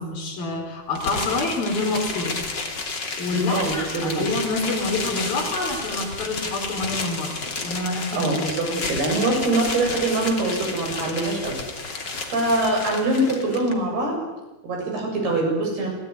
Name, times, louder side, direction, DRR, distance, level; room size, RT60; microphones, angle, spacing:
voice 1, 0.0-2.4 2.7-7.3 7.6-8.3 8.6-8.8, left 2 dB, 65° left, 2 dB, 5.9 m, -27 dB
sound 1, 1.0-13.7, left 3 dB, 30° left, 3.0 m, -31 dB
voice 2, 3.3-4.3 8.1-11.6 12.3-14.2 14.6-15.9, right 2 dB, 80° right, 0 dB, 9.7 m, -24 dB
29.0 x 18.0 x 9.7 m, 1.0 s
omnidirectional pair, 4.5 m